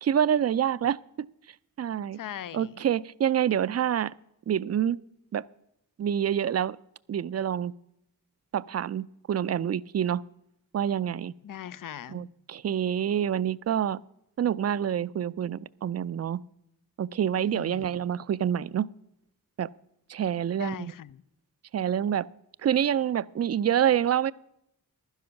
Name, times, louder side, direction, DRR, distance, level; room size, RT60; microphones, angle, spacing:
voice 1, 0.0-1.0 1.8-2.2 2.5-4.1 4.5-5.0 5.3-5.4 6.0-6.8 7.1-7.7 8.5-10.2 10.7-11.3 12.1-14.0 14.4-16.4 17.0-18.9 19.6-19.7 20.1-20.9 21.7-22.3 22.6-24.3, right 9 dB, 45° right, 0.4 m, -27 dB
voice 2, 2.2-2.7 11.4-12.3 17.5-18.0 20.6-21.2, left 10 dB, 60° left, 0.5 m, -40 dB
11.5 x 10.5 x 5.8 m
cardioid pair, 60°, 36 cm